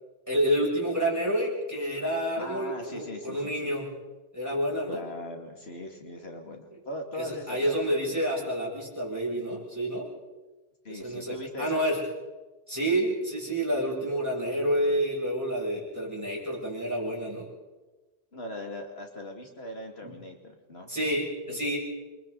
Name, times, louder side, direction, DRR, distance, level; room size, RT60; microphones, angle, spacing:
voice 1, 0.3-3.9 4.3-5.0 7.1-10.1 10.9-12.0 12.7-17.5 20.0-20.1 20.9-21.8, equal, 15° right, -4 dB, 7.6 m, -29 dB
voice 2, 2.4-3.7 4.9-8.2 10.8-11.8 18.3-20.9 21.5-21.6, left 1 dB, 90° left, 2 dB, 2.8 m, -40 dB
28.0 x 23.5 x 4.2 m, 1.2 s
omnidirectional pair, 1.0 m